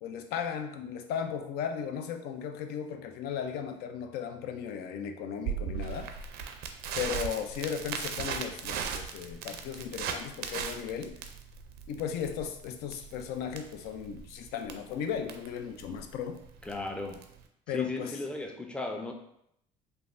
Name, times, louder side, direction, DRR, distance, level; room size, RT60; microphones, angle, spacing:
voice 1, 0.0-6.1 6.9-11.1 11.9-16.4 17.7-18.2, left 7 dB, 70° left, 7 dB, 0.4 m, -36 dB
Crackle, 5.5-17.4, right 7 dB, 65° right, 0.4 m, -38 dB
voice 2, 16.6-17.2 17.7-19.1, left 2 dB, 5° left, 3 dB, 0.4 m, -36 dB
3.2 x 2.2 x 2.5 m, 0.74 s
supercardioid pair, 80°, 17 cm